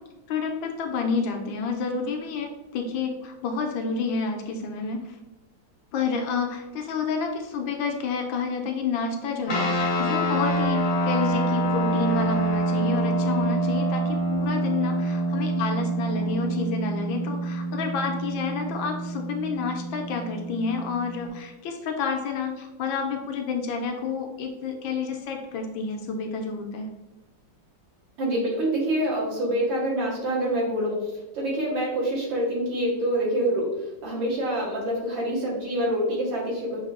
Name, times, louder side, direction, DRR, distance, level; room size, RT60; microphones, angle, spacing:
voice 1, 0.3-5.1 5.9-26.9, left 4 dB, 80° left, 3 dB, 1.3 m, -29 dB
sound 1, 9.5-21.3, right 1 dB, 55° left, 0.9 m, -26 dB
voice 2, 28.2-36.8, right 1 dB, 65° right, -6 dB, 2.1 m, -26 dB
6.3 x 2.6 x 2.4 m, 1.0 s
omnidirectional pair, 2.2 m